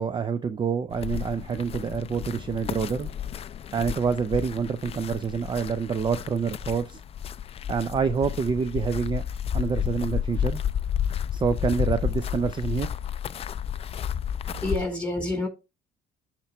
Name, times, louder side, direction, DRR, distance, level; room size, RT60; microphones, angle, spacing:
voice 1, 0.0-3.1 3.7-7.0 7.7-9.2 9.5-10.6 11.3-12.9, right 6 dB, 25° right, 0.5 m, -27 dB
sound 1, 0.9-14.8, left 9 dB, 35° left, 0.4 m, -31 dB
voice 2, 14.4-15.5, left 1 dB, 5° left, 3.6 m, -28 dB
13.0 x 4.4 x 3.0 m
cardioid pair, 110°, 17 cm